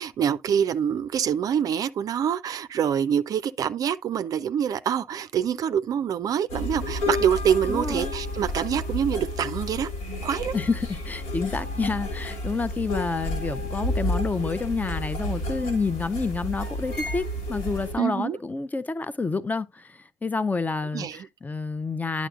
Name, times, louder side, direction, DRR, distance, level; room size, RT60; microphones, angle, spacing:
voice 1, 0.0-9.9 10.2-10.5 18.0-18.4 20.9-21.3, right 8 dB, 45° right, 0.4 m, -25 dB
Mandolin Rumors, 6.5-17.9, left 1 dB, 80° left, 2.9 m, -31 dB
voice 2, 7.7-8.1 10.5-22.3, left 4 dB, 20° left, 0.5 m, -29 dB
10.0 x 6.2 x 2.4 m
hypercardioid pair, 55°, 8 cm